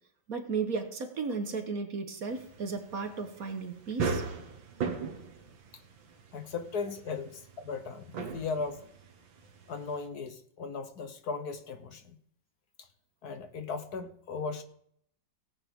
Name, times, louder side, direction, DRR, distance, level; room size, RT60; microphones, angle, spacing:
voice 1, 0.3-4.2, right 4 dB, 50° right, 7 dB, 1.5 m, -34 dB
sound 1, 2.3-10.1, right 5 dB, 85° right, 2.1 m, -38 dB
voice 2, 6.3-8.8 9.7-12.2 12.8-12.9 13.2-14.6, left 4 dB, 60° left, 9 dB, 1.3 m, -37 dB
18.0 x 8.9 x 3.6 m, 0.66 s
omnidirectional pair, 2.1 m